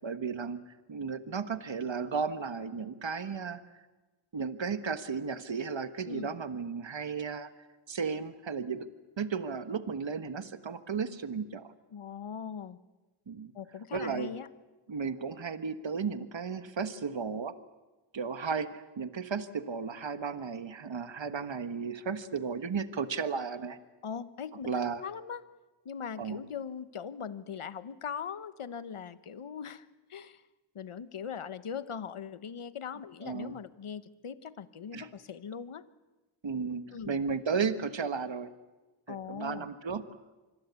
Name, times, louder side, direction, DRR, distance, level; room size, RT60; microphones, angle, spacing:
voice 1, 0.0-0.6 0.9-3.6 4.3-7.5 7.9-8.9 9.2-11.7 13.3-13.5 13.9-14.3 14.9-17.5 18.1-23.8 24.6-25.0 26.2-26.4 33.2-33.6 34.9-35.1 36.4-38.5 39.1-40.0, right 5 dB, 60° right, 11 dB, 1.4 m, -34 dB
voice 2, 11.9-12.8 13.5-14.5 24.0-24.7 25.0-25.4 25.8-30.4 30.7-35.8 36.9-37.1 39.1-39.7, left 7 dB, 80° left, 14 dB, 1.1 m, -40 dB
26.0 x 22.0 x 8.3 m, 1.2 s
wide cardioid pair, 55°, 50 cm